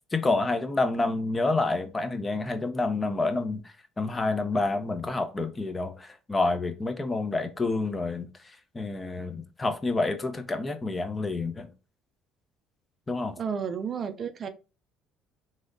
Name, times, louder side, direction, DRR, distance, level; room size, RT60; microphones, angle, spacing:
voice 1, 0.1-3.6 4.0-11.7 13.1-13.4, left 3 dB, 25° left, 0.5 m, -28 dB
voice 2, 13.4-14.5, right 6 dB, 45° right, 0.4 m, -32 dB
3.0 x 2.7 x 2.5 m
supercardioid pair, 75°, 0 cm